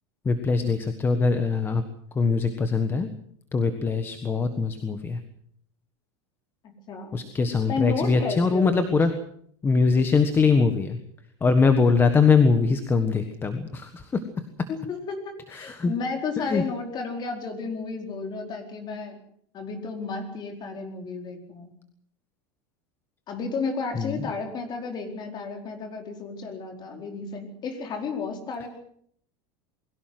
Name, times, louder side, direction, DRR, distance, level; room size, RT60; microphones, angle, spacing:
voice 1, 0.2-1.8 2.1-3.1 3.5-5.2 7.1-9.1 9.6-11.0 11.4-14.2 15.5-15.9 16.4-16.6 23.9-24.3, left 4 dB, 15° left, 9 dB, 1.5 m, -22 dB
voice 2, 6.6-7.2 7.6-8.9 14.7-19.2 19.5-21.7 23.3-28.7, left 4 dB, 30° left, 4 dB, 4.6 m, -32 dB
22.0 x 17.0 x 7.8 m, 0.65 s
supercardioid pair, 155°, 14 cm